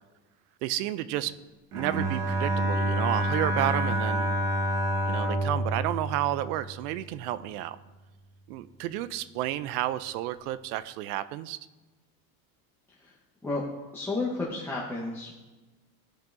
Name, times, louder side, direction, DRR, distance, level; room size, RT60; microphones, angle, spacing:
voice 1, 0.6-1.4 1.7-4.3 5.1-7.8 8.5-11.6, right 14 dB, 90° right, 16 dB, 0.5 m, -31 dB
Bowed string instrument, 1.7-7.0, right 1 dB, 70° right, 2.1 m, -28 dB
voice 2, 13.9-15.3, left 3 dB, 5° left, -7 dB, 0.9 m, -32 dB
13.0 x 5.4 x 2.6 m, 1.2 s
supercardioid pair, 135°, 44 cm